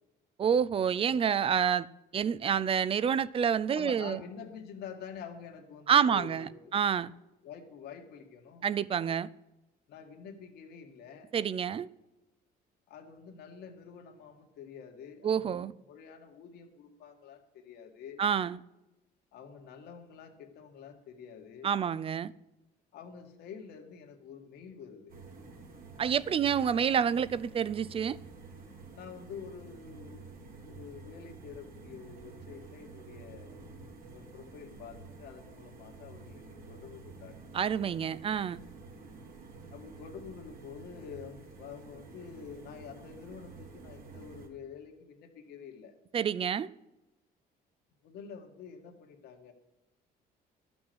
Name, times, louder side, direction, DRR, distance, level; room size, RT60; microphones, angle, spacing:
voice 1, 0.4-1.9 2.1-4.2 5.9-7.1 8.6-9.3 11.3-11.9 15.2-15.7 18.2-18.6 21.6-22.3 26.0-28.2 37.5-38.6 46.1-46.7, right 7 dB, 35° right, 0.4 m, -28 dB
voice 2, 3.7-6.8 7.4-8.7 9.9-11.3 12.9-18.2 19.3-21.7 22.9-25.1 28.9-33.6 34.1-37.4 39.7-45.9 48.0-49.5, left 7 dB, 75° left, 1.8 m, -48 dB
sound 1, 25.1-44.5, right 4 dB, 55° right, 2.3 m, -50 dB
12.0 x 6.1 x 7.8 m
cardioid pair, 110°, 17 cm